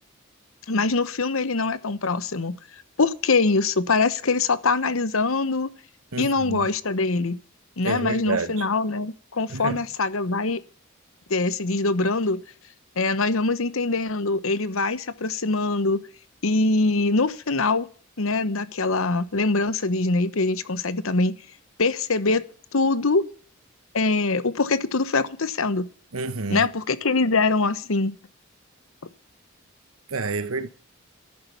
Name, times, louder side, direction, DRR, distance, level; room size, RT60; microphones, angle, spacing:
voice 1, 0.7-2.6 3.0-5.7 6.2-7.4 7.8-10.6 11.3-12.4 13.0-16.0 16.4-17.9 18.2-21.4 21.8-22.4 22.7-23.3 23.9-25.9 26.5-28.2, left 3 dB, 75° left, 1.0 m, -23 dB
voice 2, 6.1-6.7 7.8-8.7 9.5-9.8 26.1-26.7 30.1-30.7, right 3 dB, 85° right, 1.3 m, -29 dB
13.5 x 11.5 x 7.0 m
head